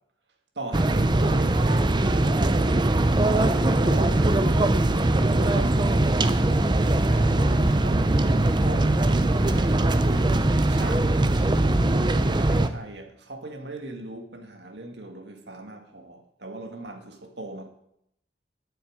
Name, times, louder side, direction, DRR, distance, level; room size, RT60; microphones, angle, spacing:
voice 1, 0.6-2.6 3.2-4.6 5.0-5.8 7.1-17.7, right 2 dB, 70° right, 2.2 m, -39 dB
sound 1, 0.7-12.7, right 2 dB, 25° right, 0.7 m, -21 dB
sound 2, 1.4-11.0, right 1 dB, 85° right, 5.3 m, -47 dB
9.3 x 8.5 x 8.8 m
head